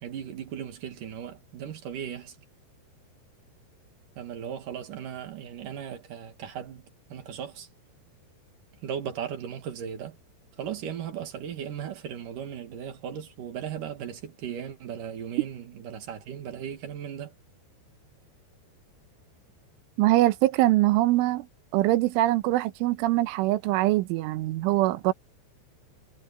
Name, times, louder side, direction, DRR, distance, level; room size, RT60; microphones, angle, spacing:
voice 1, 0.0-2.4 4.2-7.7 8.8-10.2 10.6-17.3, right 8 dB, 55° right, 2.9 m, -37 dB
voice 2, 20.0-21.5 21.7-25.1, right 17 dB, 90° right, 3.5 m, -23 dB
omnidirectional pair, 5.5 m